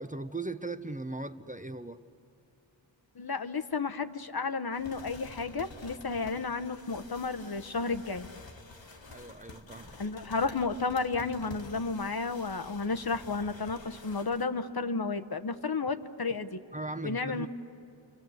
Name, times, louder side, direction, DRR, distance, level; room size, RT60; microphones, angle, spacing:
voice 1, 0.0-2.0 9.1-10.0 16.7-17.5, right 2 dB, 15° right, 10 dB, 0.7 m, -38 dB
voice 2, 3.1-8.3 10.0-16.6 17.0-17.5, left 4 dB, 50° left, 8 dB, 1.0 m, -32 dB
sound 1, 4.7-14.4, left 2 dB, 70° left, 2.0 m, -49 dB
29.5 x 24.0 x 8.0 m, 2.6 s
wide cardioid pair, 55°, 46 cm